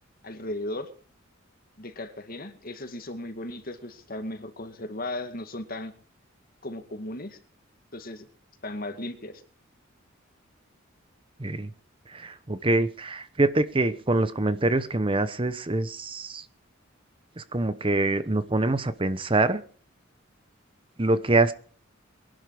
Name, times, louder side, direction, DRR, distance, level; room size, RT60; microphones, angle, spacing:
voice 1, 0.2-0.9 1.8-5.9 6.6-7.4 7.9-8.2 8.6-9.4, left 1 dB, 45° left, 8 dB, 2.1 m, -36 dB
voice 2, 11.4-11.7 12.1-16.4 17.4-19.6 21.0-21.5, right 2 dB, 25° right, 13 dB, 0.9 m, -25 dB
22.5 x 11.5 x 4.9 m, 0.43 s
head